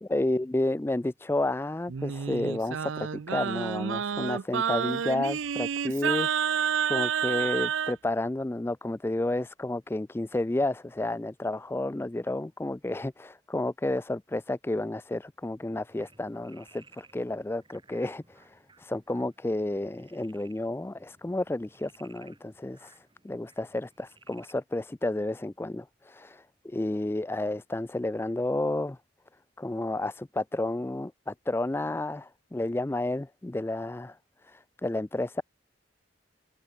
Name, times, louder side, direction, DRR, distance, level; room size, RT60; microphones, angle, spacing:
voice 1, 0.1-29.0 29.6-34.2 34.4-35.4, left 2 dB, 10° left, 0.3 m, -31 dB
Singing, 1.9-7.9, right 7 dB, 80° right, 0.5 m, -29 dB
Frog, 15.9-24.6, right 3 dB, 25° right, 7.1 m, -59 dB
open air
head